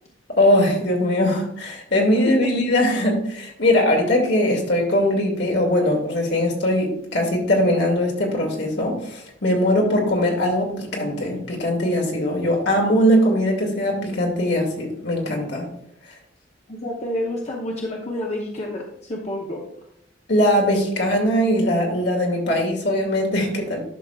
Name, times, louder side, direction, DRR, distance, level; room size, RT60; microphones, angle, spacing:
voice 1, 0.4-15.7 20.3-23.8, left 1 dB, 65° left, 0 dB, 2.2 m, -20 dB
voice 2, 16.7-19.6, left 1 dB, 35° left, -1 dB, 1.0 m, -29 dB
11.5 x 6.2 x 2.4 m, 0.72 s
head